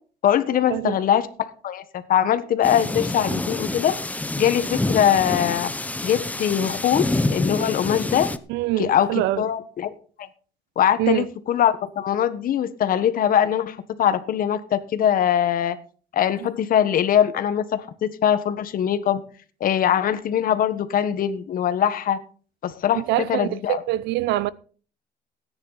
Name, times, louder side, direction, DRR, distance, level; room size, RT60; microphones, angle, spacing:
voice 1, 0.2-3.9 4.4-5.7 6.0-8.3 8.8-9.1 9.4-10.3 10.8-15.8 16.1-19.2 19.6-22.2 22.6-23.8, left 9 dB, 55° left, 1.4 m, -22 dB
sound 1, 2.6-8.4, left 2 dB, 10° left, 0.9 m, -27 dB
voice 2, 8.5-9.4 11.0-11.3 16.4-16.5 22.9-24.5, right 15 dB, 85° right, 0.7 m, -24 dB
17.0 x 9.8 x 4.2 m
cardioid pair, 110°, 17 cm